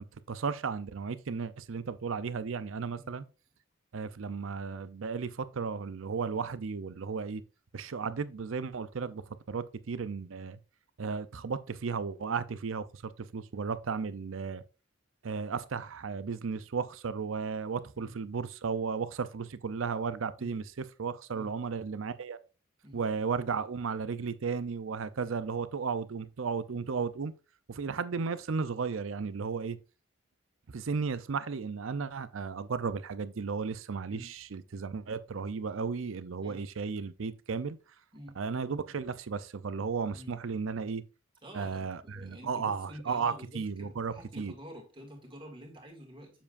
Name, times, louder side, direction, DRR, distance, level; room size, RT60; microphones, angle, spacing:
voice 1, 0.3-3.3 3.9-7.4 7.7-9.2 9.5-10.6 11.0-14.6 15.2-22.4 22.9-27.3 27.7-29.8 30.7-37.8 38.4-41.0 41.5-44.5, right 5 dB, 75° right, 0.5 m, -34 dB
voice 2, 41.4-46.3, equal, 25° right, 2.1 m, -48 dB
7.2 x 7.2 x 2.5 m
head